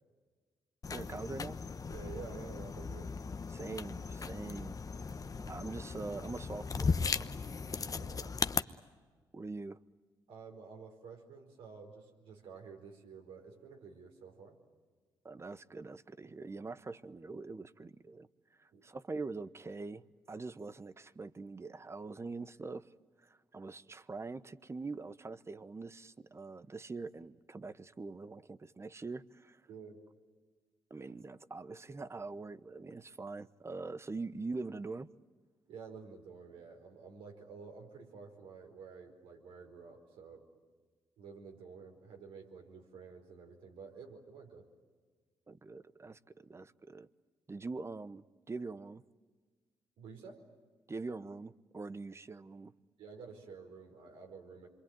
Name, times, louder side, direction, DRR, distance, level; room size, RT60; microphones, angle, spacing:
sound 1, 0.8-8.6, left 4 dB, 40° left, 1.0 m, -37 dB
voice 1, 0.9-1.6 3.5-4.8 5.4-7.3 9.3-9.8 15.2-18.3 18.6-22.9 23.2-29.6 30.9-35.1 45.5-47.1 47.5-49.0 50.9-52.7, right 3 dB, 30° right, 1.0 m, -43 dB
voice 2, 1.9-3.1 5.3-5.5 7.7-8.3 10.3-14.6 18.7-18.8 29.7-30.0 35.7-40.4 41.2-44.7 50.0-50.4 53.0-54.7, right 5 dB, 80° right, 4.7 m, -51 dB
27.0 x 23.5 x 9.2 m
supercardioid pair, 55°, 9 cm